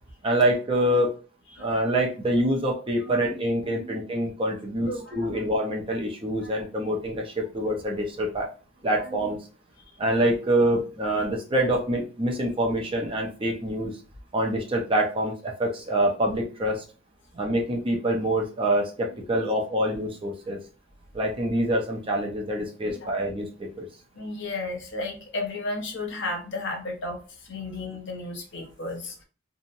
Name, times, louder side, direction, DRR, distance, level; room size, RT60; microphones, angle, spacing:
voice 1, 0.2-1.1 1.6-8.5 8.8-9.4 10.0-13.9 14.3-16.8 17.3-20.6 21.1-23.9, right 1 dB, 25° right, 0 dB, 0.5 m, -26 dB
voice 2, 1.5-2.0 3.0-3.9 4.8-5.4 6.4-6.5 9.0-9.3 9.8-9.9 22.9-23.1 24.1-29.2, left 2 dB, 65° left, 2 dB, 0.7 m, -34 dB
2.7 x 2.0 x 2.6 m, 0.35 s
head